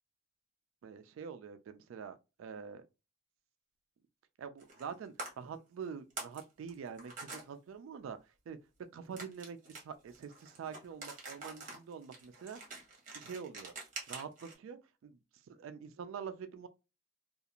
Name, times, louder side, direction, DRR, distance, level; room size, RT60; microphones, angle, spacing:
voice 1, 0.8-2.9 4.4-8.2 8.5-8.6 8.9-12.6 13.1-13.7 14.1-15.2 15.5-16.7, right 6 dB, 80° right, 0.3 m, -45 dB
sound 1, 4.6-4.9 5.2-5.3 5.8-6.4 6.7-7.4 9.2-14.5, right 3 dB, 40° right, 1.0 m, -46 dB
2.4 x 2.4 x 2.8 m
head